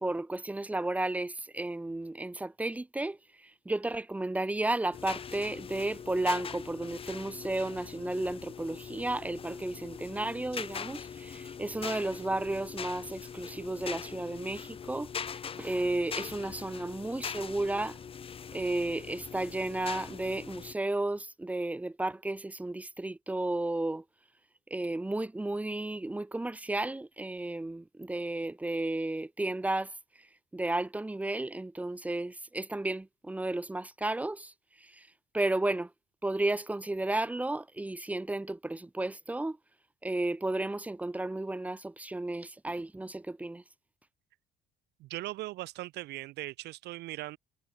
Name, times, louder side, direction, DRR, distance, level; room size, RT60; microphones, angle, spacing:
voice 1, 0.0-18.0 18.5-24.0 24.7-29.9 30.5-35.1 35.3-35.9 36.2-39.6 40.0-43.6, right 2 dB, 10° right, 0.7 m, -33 dB
sound 1, 4.9-20.7, left 7 dB, 35° left, 1.0 m, -42 dB
voice 2, 45.0-47.4, right 18 dB, 80° right, 1.2 m, -39 dB
cardioid pair, 110°, 17 cm